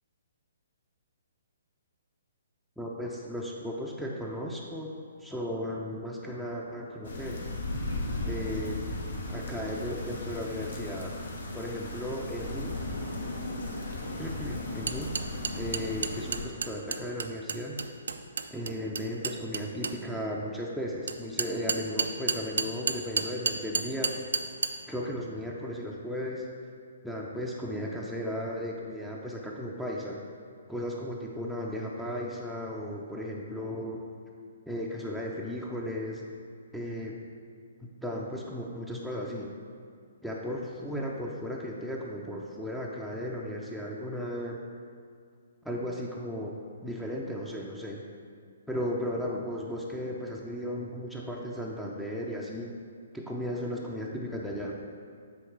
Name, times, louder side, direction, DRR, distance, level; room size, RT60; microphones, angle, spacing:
voice 1, 2.8-4.9 5.2-7.4 8.2-8.8 9.3-11.1 11.5-12.7 14.2-15.2 15.5-17.8 18.5-24.1 24.9-26.4 27.0-30.2 30.7-34.0 34.7-36.2 36.7-37.2 37.8-39.5 40.2-44.6 45.6-46.5 46.8-48.0 48.7-52.7 53.1-54.8, equal, ahead, -3 dB, 0.5 m, -35 dB
sound 1, 7.0-16.4, left 2 dB, 75° left, 1.1 m, -36 dB
sound 2, 14.9-20.0 21.1-24.7, right 5 dB, 75° right, 0.4 m, -30 dB
7.8 x 3.2 x 4.6 m, 2.1 s
hypercardioid pair, 140°, 0 cm